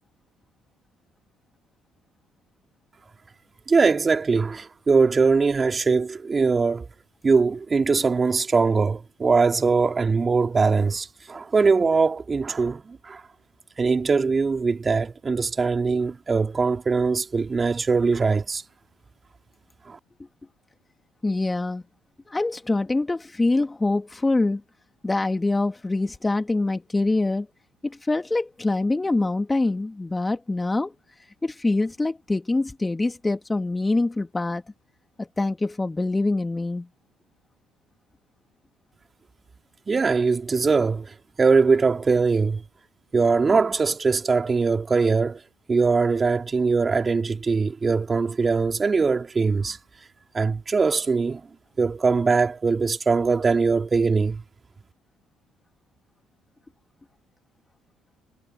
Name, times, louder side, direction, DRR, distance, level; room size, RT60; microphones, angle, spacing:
voice 1, 3.7-6.9 7.2-13.2 13.8-18.6 19.9-20.0 39.9-42.6 43.1-45.4 45.7-49.8 50.3-51.5 51.8-54.4, right 4 dB, 35° right, 3.0 m, -21 dB
voice 2, 21.2-21.8 22.3-24.6 25.0-27.5 27.8-30.9 31.4-34.6 35.2-36.9, left 2 dB, 20° left, 2.7 m, -24 dB
hypercardioid pair, 55°, 0 cm